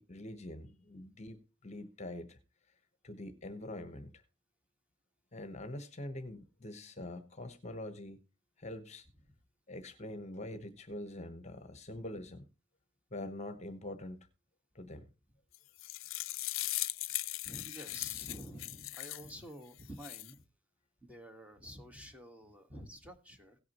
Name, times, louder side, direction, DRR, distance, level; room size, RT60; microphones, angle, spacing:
voice 1, 0.0-2.4 3.0-4.2 5.3-8.2 8.6-9.0 9.7-12.4 13.1-14.3 14.7-15.0, left 1 dB, 35° left, 1.0 m, -44 dB
sound 1, 15.5-19.3 19.8-20.3, left 18 dB, 75° left, 0.5 m, -39 dB
voice 2, 17.4-20.5 21.0-23.6, equal, 5° right, 1.4 m, -49 dB
17.0 x 8.3 x 3.0 m
head